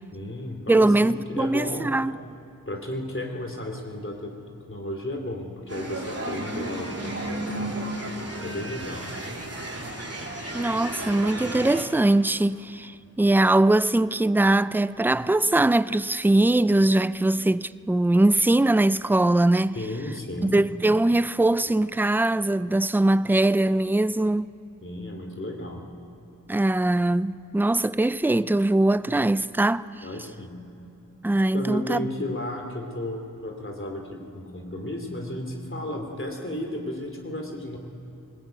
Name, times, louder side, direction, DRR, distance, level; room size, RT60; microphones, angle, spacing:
voice 1, 0.1-1.9 2.7-4.3 4.7-9.1 19.7-20.6 24.8-25.9 30.0-30.6 31.5-37.8, left 1 dB, 40° left, 3.0 m, -34 dB
voice 2, 0.7-2.1 10.5-19.8 20.4-24.5 26.5-30.0 31.2-32.0, right 2 dB, 5° right, 0.4 m, -21 dB
sound 1, 5.7-11.8, right 1 dB, 45° right, 3.3 m, -33 dB
20.0 x 20.0 x 9.2 m
wide cardioid pair, 60°, 33 cm